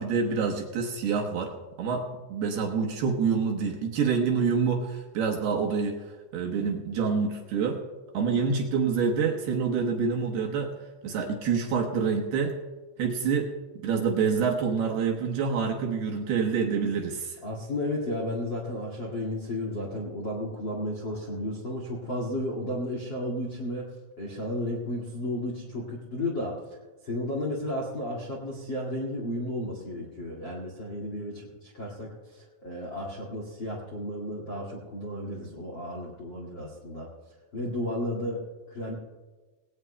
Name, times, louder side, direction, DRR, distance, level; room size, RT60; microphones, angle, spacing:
voice 1, 0.0-6.0 6.3-7.8 8.1-10.8 11.0-12.5 13.0-13.5 13.8-17.4, right 5 dB, 70° right, 1 dB, 2.7 m, -27 dB
voice 2, 17.4-26.6 27.0-37.1 37.5-38.4 38.7-38.9, left 1 dB, 55° left, -2 dB, 1.3 m, -33 dB
19.0 x 18.0 x 2.2 m, 1.3 s
omnidirectional pair, 5.5 m